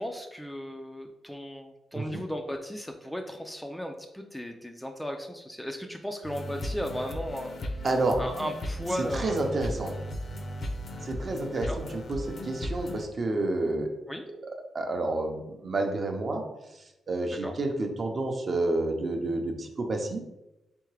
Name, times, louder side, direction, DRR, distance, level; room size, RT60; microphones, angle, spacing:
voice 1, 0.0-7.6 8.2-9.5 11.7-11.8 14.1-14.2 17.3-17.6, equal, 5° left, 3 dB, 0.3 m, -36 dB
sound 1, 6.2-13.1, left 1 dB, 55° left, 0.5 m, -36 dB
voice 2, 7.8-8.2 9.0-9.9 11.0-13.9 14.7-16.4 17.1-20.2, right 2 dB, 40° right, 3 dB, 0.6 m, -29 dB
3.7 x 3.4 x 3.2 m, 0.94 s
cardioid pair, 120°, 0 cm